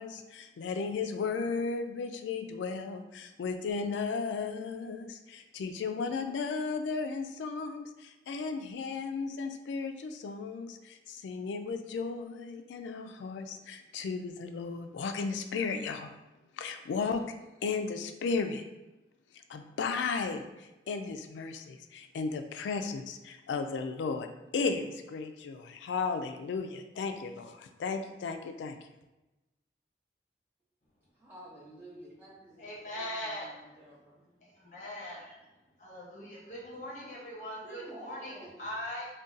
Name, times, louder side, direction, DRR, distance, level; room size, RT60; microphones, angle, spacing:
voice 1, 0.0-16.1 16.6-17.3 17.6-18.6 19.5-24.3 24.5-28.8, left 4 dB, 90° left, 7 dB, 0.3 m, -35 dB
voice 2, 31.1-32.6 32.8-34.3 37.6-38.6, right 1 dB, 10° right, -9 dB, 0.9 m, -50 dB
voice 3, 32.6-33.6 34.4-35.3 35.8-39.1, left 1 dB, 45° left, -4 dB, 0.8 m, -41 dB
2.6 x 2.2 x 3.6 m, 1.0 s
head